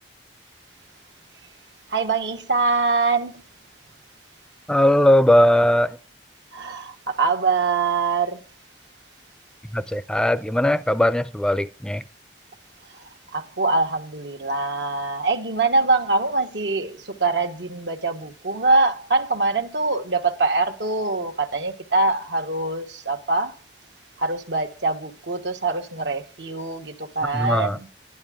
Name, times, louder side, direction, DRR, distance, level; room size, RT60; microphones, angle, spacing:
voice 1, 1.9-3.4 6.5-8.4 12.9-23.5 24.2-27.9, right 3 dB, 85° right, 1.2 m, -24 dB
voice 2, 4.7-6.0 9.7-12.0 27.3-27.8, left 1 dB, 5° left, 0.4 m, -19 dB
12.0 x 10.5 x 3.6 m
head